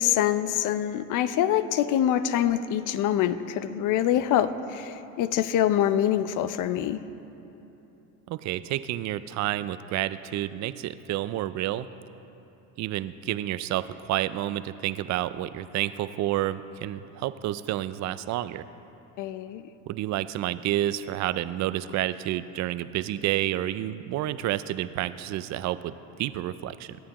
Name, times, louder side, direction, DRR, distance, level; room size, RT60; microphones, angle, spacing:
voice 1, 0.0-7.0 19.2-19.6, left 11 dB, 55° left, 13 dB, 0.6 m, -25 dB
voice 2, 8.3-11.9 12.8-18.7 19.9-27.0, right 13 dB, 50° right, 14 dB, 0.4 m, -30 dB
17.0 x 9.5 x 3.0 m, 2.9 s
supercardioid pair, 95°, 37 cm